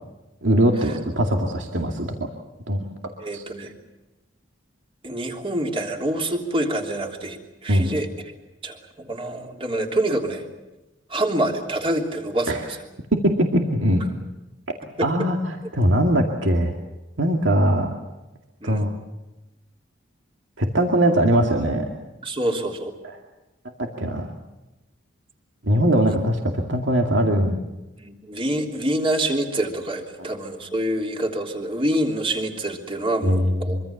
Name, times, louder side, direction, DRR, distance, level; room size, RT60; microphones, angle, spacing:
voice 1, 0.4-2.3 2.7-2.9 3.3-3.4 7.7-7.9 12.5-12.6 13.1-14.1 15.0-15.4 15.7-16.7 17.2-17.9 18.6-18.9 20.6-21.9 24.0-24.3 25.6-27.6 33.2-33.8, right 1 dB, 80° right, 2 dB, 2.3 m, -21 dB
voice 2, 3.2-3.7 5.0-8.1 8.6-10.4 11.1-12.8 15.0-15.3 18.6-18.9 22.2-22.9 26.0-26.2 28.0-33.8, right 1 dB, 30° right, 2 dB, 3.2 m, -26 dB
25.0 x 25.0 x 7.2 m, 1.0 s
head